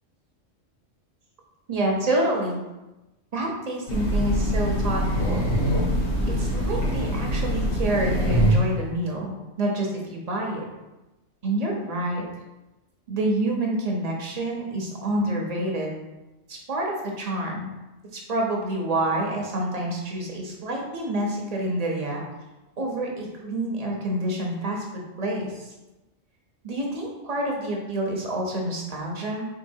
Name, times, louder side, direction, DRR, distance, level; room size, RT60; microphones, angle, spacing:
voice 1, 1.7-2.6 3.3-5.5 6.3-10.6 11.4-12.2 13.1-16.0 16.5-17.7 18.1-22.2 22.8-25.7 26.6-29.5, right 1 dB, 35° right, -1 dB, 0.7 m, -28 dB
Train, 3.9-8.8, equal, 60° left, 1.0 m, -23 dB
3.8 x 3.6 x 2.7 m, 1.0 s
omnidirectional pair, 1.3 m